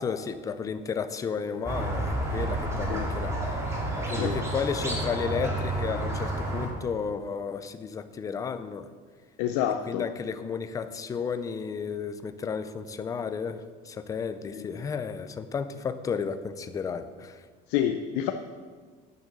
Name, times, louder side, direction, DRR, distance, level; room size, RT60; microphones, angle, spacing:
voice 1, 0.0-3.6 4.1-8.9 9.9-17.4, left 6 dB, 15° left, 11 dB, 0.4 m, -33 dB
Squeak, 1.7-6.7, right 1 dB, 15° right, 1.9 m, -30 dB
voice 2, 9.4-10.1 14.5-14.7 17.7-18.3, left 10 dB, 85° left, 6 dB, 0.6 m, -28 dB
9.1 x 6.5 x 6.7 m, 1.5 s
cardioid pair, 165°, 19 cm